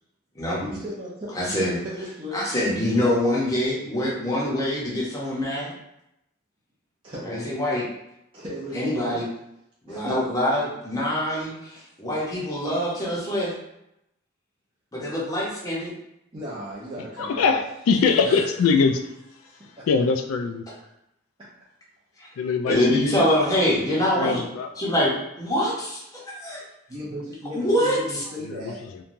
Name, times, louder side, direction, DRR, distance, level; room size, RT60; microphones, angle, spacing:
voice 1, 0.6-2.5 7.0-7.5 8.3-9.2 9.9-10.1 16.3-17.6 19.5-19.9 26.9-28.8, equal, 25° right, -9 dB, 0.6 m, -35 dB
voice 2, 1.4-1.8 2.3-5.7 7.2-7.8 8.7-9.2 9.8-13.5 14.9-15.9 22.2-22.3 22.7-24.4 24.8-25.1 25.4-26.6 27.5-28.2, left 1 dB, 15° left, -6 dB, 0.7 m, -24 dB
voice 3, 17.0-19.0 19.9-20.6 22.4-23.3 23.9-24.7 28.4-28.7, left 5 dB, 90° left, 6 dB, 0.3 m, -23 dB
3.0 x 2.2 x 2.6 m, 0.83 s
head